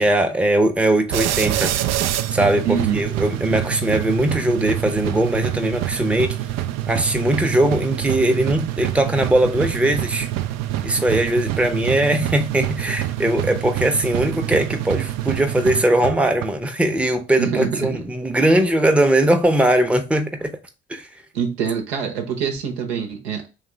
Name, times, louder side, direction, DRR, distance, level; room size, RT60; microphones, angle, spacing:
voice 1, 0.0-1.7 2.3-2.7 2.9-6.4 6.9-10.3 10.8-20.6 20.9-21.1, right 1 dB, 5° right, 0.7 m, -20 dB
sound 1, 1.1-16.5, right 13 dB, 55° right, 0.4 m, -26 dB
voice 2, 2.6-3.1 17.4-17.9 21.3-23.5, right 7 dB, 80° right, 0.8 m, -24 dB
3.6 x 3.2 x 3.3 m
figure-of-eight pair, 45°, 32 cm